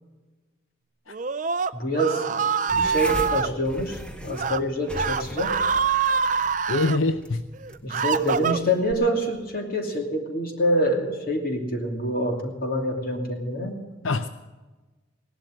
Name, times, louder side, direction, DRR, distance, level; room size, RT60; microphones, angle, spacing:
Screaming, 1.1-3.5 4.3-4.6 4.9-7.0 7.5-8.9, right 5 dB, 40° right, 0.4 m, -25 dB
voice 1, 1.7-5.5 7.8-13.7, equal, 45° left, 3 dB, 2.7 m, -26 dB
sound 1, 2.7-9.6, equal, 5° left, 1.0 m, -39 dB
voice 2, 6.7-7.4 14.0-14.3, left 2 dB, 80° left, 11 dB, 0.6 m, -24 dB
17.5 x 12.0 x 6.5 m, 1.2 s
head